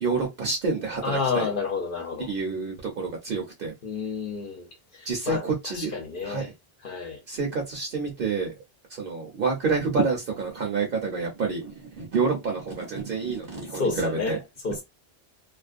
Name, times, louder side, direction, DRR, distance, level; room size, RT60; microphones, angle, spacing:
voice 1, 0.0-1.5 2.2-3.7 5.1-5.9 6.2-6.5 7.3-8.5 9.0-14.4, right 4 dB, 65° right, 0.9 m, -28 dB
voice 2, 1.0-2.3 3.8-4.7 5.0-6.5 6.8-7.2 13.8-14.8, left 4 dB, 60° left, 0.8 m, -30 dB
2.5 x 2.1 x 2.4 m
omnidirectional pair, 1.0 m